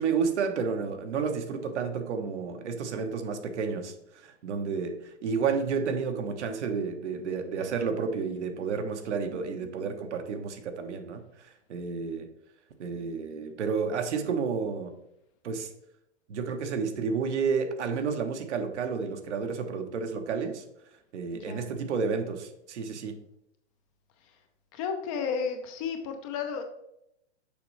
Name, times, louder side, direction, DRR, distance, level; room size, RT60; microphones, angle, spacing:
voice 1, 0.0-12.3 12.8-14.9 15.4-15.7 16.3-20.6 21.1-23.2, right 5 dB, 70° right, 6 dB, 1.2 m, -31 dB
voice 2, 21.3-21.7 24.7-26.6, left 6 dB, 30° left, 6 dB, 0.7 m, -32 dB
6.8 x 5.2 x 3.2 m, 0.80 s
hypercardioid pair, 150°, 36 cm